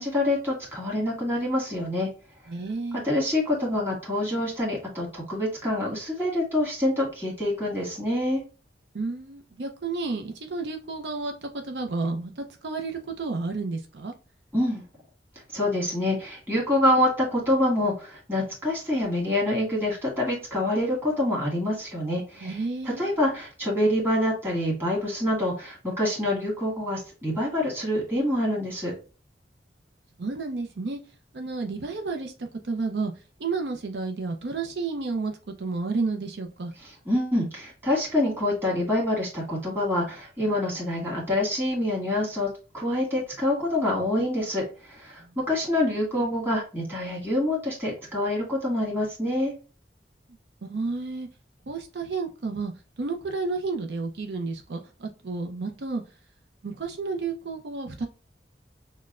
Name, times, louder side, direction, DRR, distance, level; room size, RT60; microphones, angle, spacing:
voice 1, 0.0-2.1 3.0-8.4 14.5-14.8 15.5-22.6 22.8-28.9 36.8-49.5, left 1 dB, 15° right, -4 dB, 1.8 m, -26 dB
voice 2, 2.5-3.0 8.9-14.1 22.4-23.1 30.2-31.0 31.3-33.1 33.4-36.7 50.6-51.3 51.7-52.7 53.0-56.0 56.6-58.1, right 3 dB, 75° right, 4 dB, 0.5 m, -31 dB
6.2 x 2.1 x 2.4 m, 0.34 s
head